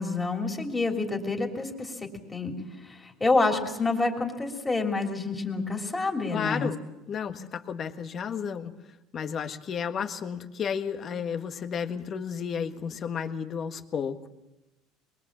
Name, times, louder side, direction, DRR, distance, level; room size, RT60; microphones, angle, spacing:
voice 1, 0.0-1.9 2.3-2.5 2.8-6.7 7.3-7.4, left 3 dB, 10° left, 1 dB, 3.2 m, -28 dB
voice 2, 6.3-6.8 7.1-8.7 9.1-14.3, left 7 dB, 30° left, 6 dB, 1.6 m, -32 dB
23.5 x 22.5 x 7.5 m, 0.98 s
cardioid pair, 160°, 0 cm